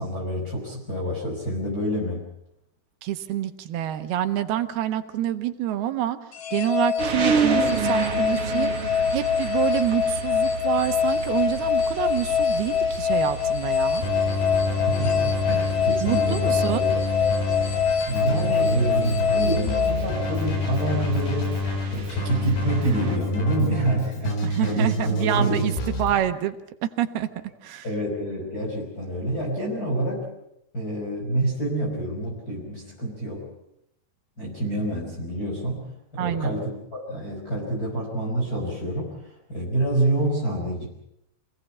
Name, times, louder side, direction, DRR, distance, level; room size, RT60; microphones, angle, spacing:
voice 1, 0.0-2.3 14.9-16.8 17.7-21.5 21.9-24.4 24.6-25.6 27.8-30.3 30.7-33.5 34.4-35.8 36.1-40.9, right 1 dB, 20° left, -3 dB, 5.6 m, -27 dB
voice 2, 3.0-6.2 6.5-14.0 16.0-16.9 24.4-26.6 26.8-27.3 27.6-27.8 36.2-36.6, right 12 dB, 75° right, 8 dB, 3.2 m, -27 dB
sound 1, 6.3-20.7, left 7 dB, 60° left, 3.1 m, -25 dB
sound 2, 7.0-23.2, right 4 dB, 40° right, 2.7 m, -32 dB
Keyboard (musical), 14.0-26.1, left 2 dB, 80° left, 6.3 m, -28 dB
27.0 x 17.5 x 8.4 m, 0.78 s
omnidirectional pair, 4.6 m